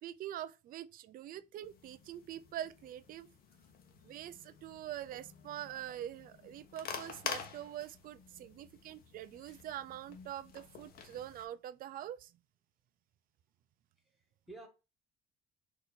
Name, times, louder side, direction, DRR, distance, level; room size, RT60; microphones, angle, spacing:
voice 1, 0.0-3.3 4.0-12.3, right 11 dB, 55° right, 0.4 m, -44 dB
sound 1, 1.6-11.5, left 6 dB, 60° left, 0.9 m, -48 dB
voice 2, 14.0-14.7, right 2 dB, ahead, 1.4 m, -53 dB
4.0 x 2.6 x 4.3 m
cardioid pair, 110°, 17 cm